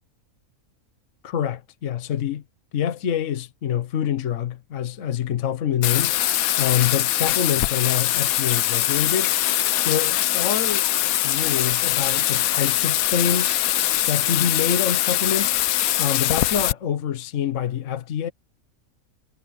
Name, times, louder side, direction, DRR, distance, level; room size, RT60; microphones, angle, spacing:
voice 1, 1.2-2.4 2.7-6.2 6.6-9.3 9.8-10.8 11.2-13.6 14.1-15.6 16.0-18.3, left 8 dB, 60° left, 1.2 m, -26 dB
Bathtub (filling or washing), 5.8-16.7, left 13 dB, 80° left, 1.0 m, -22 dB
omnidirectional pair, 1.5 m